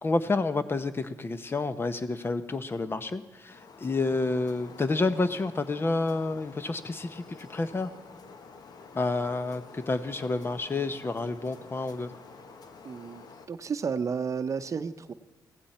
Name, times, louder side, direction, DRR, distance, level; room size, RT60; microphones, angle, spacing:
voice 1, 0.0-7.9 8.9-12.2, left 3 dB, 30° left, 11 dB, 0.9 m, -29 dB
sound 1, 3.5-13.5, left 4 dB, 65° left, 1.3 m, -49 dB
voice 2, 12.8-15.1, right 6 dB, 45° right, 11 dB, 0.7 m, -32 dB
16.5 x 15.0 x 4.3 m, 1.3 s
cardioid pair, 95°, 7 cm